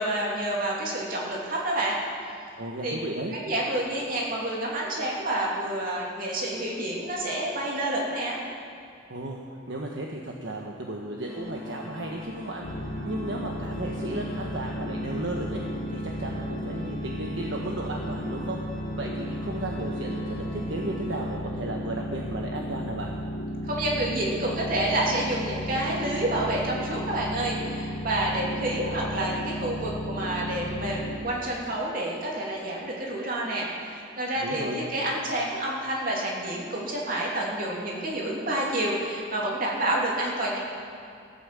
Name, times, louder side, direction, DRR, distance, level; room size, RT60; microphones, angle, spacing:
voice 1, 0.0-2.0 2.8-3.0 3.3-8.4 23.6-40.6, right 1 dB, 45° right, -3 dB, 2.9 m, -29 dB
voice 2, 2.6-3.3 9.1-23.1 34.3-34.8, right 1 dB, 65° right, -1 dB, 1.2 m, -35 dB
Organ, 11.2-22.0, left 1 dB, 90° right, 4.6 m, -42 dB
sound 1, 12.6-31.2, equal, 80° left, 1.5 m, -34 dB
16.5 x 9.0 x 7.6 m, 2.5 s
head